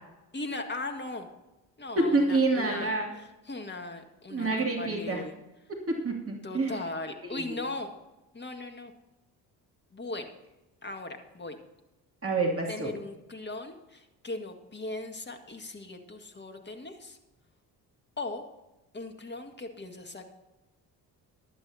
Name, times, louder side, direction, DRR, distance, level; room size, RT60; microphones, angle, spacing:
voice 1, 0.3-1.3 1.8-5.3 6.4-7.9 8.3-8.9 9.9-10.3 10.8-11.6 12.7-17.2 18.2-18.4 18.9-20.3, left 2 dB, 20° left, 5 dB, 1.8 m, -38 dB
voice 2, 2.0-3.1 4.3-5.2 5.9-6.8 7.3-7.4 12.2-12.9, right 2 dB, 25° right, -1 dB, 2.7 m, -27 dB
15.5 x 11.5 x 2.8 m, 1.0 s
figure-of-eight pair, 45°, 50 cm